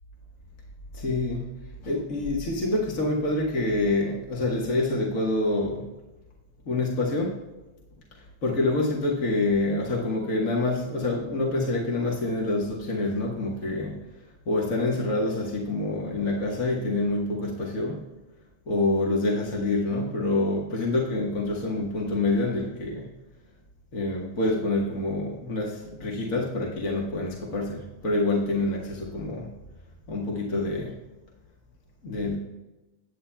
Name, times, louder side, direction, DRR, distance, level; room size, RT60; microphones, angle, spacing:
voice 1, 0.9-1.5 1.8-5.8 6.7-7.4 8.4-14.0 14.4-18.0 18.7-23.1 23.9-29.5 30.1-30.9 32.0-32.4, left 2 dB, 45° left, -2 dB, 1.0 m, -26 dB
20.0 x 8.6 x 2.3 m, 1.1 s
omnidirectional pair, 3.4 m